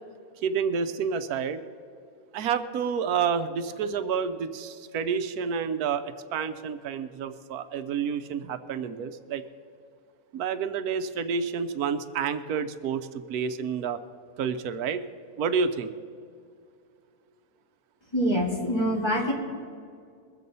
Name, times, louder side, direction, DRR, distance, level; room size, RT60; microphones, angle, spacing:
voice 1, 0.4-1.6 2.3-9.4 10.3-14.0 14.4-15.1 15.4-15.9, right 6 dB, 90° right, 11 dB, 1.2 m, -29 dB
voice 2, 18.1-19.3, equal, 15° left, -1 dB, 2.4 m, -25 dB
21.5 x 7.5 x 5.4 m, 2.3 s
omnidirectional pair, 1.5 m